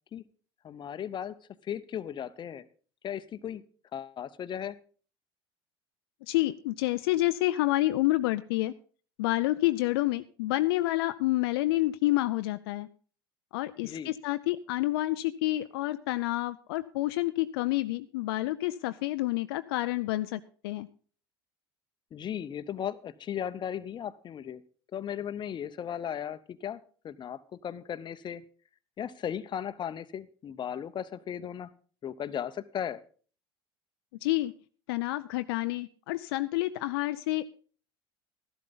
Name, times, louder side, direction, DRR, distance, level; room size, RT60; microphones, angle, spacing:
voice 1, 0.6-1.3 1.7-2.6 3.0-3.6 3.9-4.7 13.8-14.1 22.1-24.6 24.9-26.8 27.0-28.4 29.0-31.7 32.0-33.0, left 9 dB, 35° left, 13 dB, 0.8 m, -36 dB
voice 2, 6.3-8.7 9.2-12.9 13.5-20.9 34.2-34.5 34.9-37.4, left 17 dB, 70° left, 11 dB, 0.5 m, -28 dB
13.0 x 12.0 x 4.0 m, 0.41 s
hypercardioid pair, 70°, 13 cm